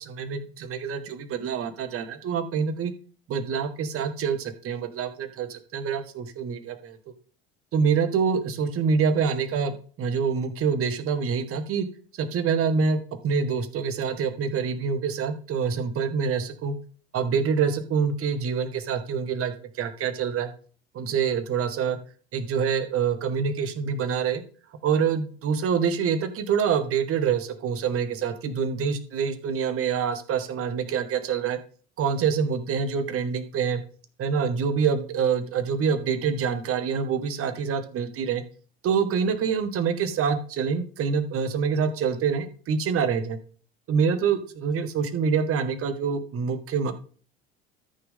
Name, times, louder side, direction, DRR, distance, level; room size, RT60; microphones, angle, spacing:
voice 1, 0.0-2.9 3.3-7.0 7.7-11.9 12.2-13.0 13.2-16.7 17.1-20.5 20.9-22.0 22.3-24.4 24.8-31.6 32.0-33.8 34.2-38.4 38.8-43.4 43.9-46.9, right 6 dB, 45° right, 9 dB, 1.9 m, -26 dB
13.5 x 6.3 x 3.8 m, 0.42 s
hypercardioid pair, 75°, 31 cm